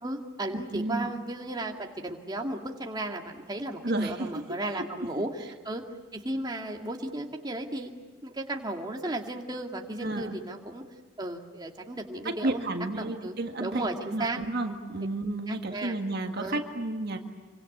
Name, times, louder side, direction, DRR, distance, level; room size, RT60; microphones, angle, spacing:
voice 1, 0.0-5.8 6.1-7.9 8.2-10.8 11.2-14.4 15.5-15.9 16.4-16.6, right 1 dB, 20° right, 2 dB, 2.2 m, -35 dB
voice 2, 0.5-1.1 3.8-4.8 10.0-10.4 12.3-17.2, right 2 dB, 55° right, 4 dB, 1.9 m, -32 dB
26.5 x 24.5 x 8.6 m, 1.4 s
head